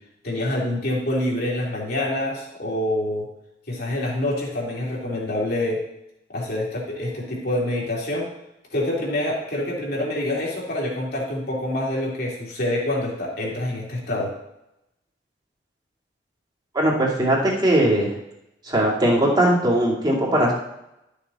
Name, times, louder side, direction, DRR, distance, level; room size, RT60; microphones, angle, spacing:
voice 1, 0.2-3.2 3.7-5.8 6.3-8.3 8.7-14.3, left 1 dB, 55° left, -3 dB, 3.0 m, -26 dB
voice 2, 16.7-18.1 18.7-20.5, right 1 dB, 25° right, -4 dB, 2.5 m, -19 dB
12.0 x 6.8 x 4.2 m, 0.87 s
head